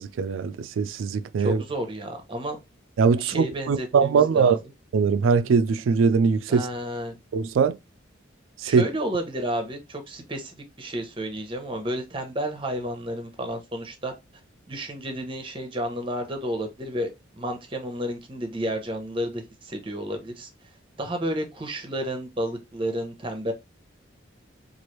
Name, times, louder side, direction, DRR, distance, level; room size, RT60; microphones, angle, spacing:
voice 1, 0.0-1.6 3.0-4.6 4.9-6.7 7.3-7.8 8.6-8.9, right 5 dB, 80° right, 0.3 m, -21 dB
voice 2, 1.4-2.6 3.1-4.6 6.5-7.2 8.6-14.1 14.7-20.5 21.0-23.5, equal, 25° right, 0.7 m, -31 dB
3.1 x 2.5 x 3.0 m
head